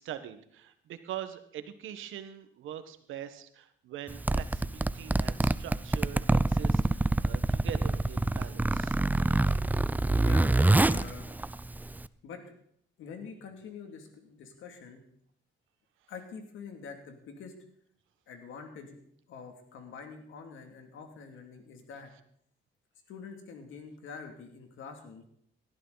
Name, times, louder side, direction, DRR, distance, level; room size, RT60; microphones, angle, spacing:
voice 1, 0.0-9.0, right 11 dB, 85° right, 10 dB, 1.3 m, -43 dB
Zipper (clothing), 4.1-12.1, right 2 dB, 10° right, 0.4 m, -26 dB
voice 2, 10.1-11.3 12.2-12.5 13.0-15.0 16.1-17.5 18.3-19.0 19.3-22.1 23.1-25.2, left 5 dB, 80° left, 5 dB, 2.6 m, -46 dB
18.0 x 12.5 x 4.0 m, 0.67 s
cardioid pair, 90°, 20 cm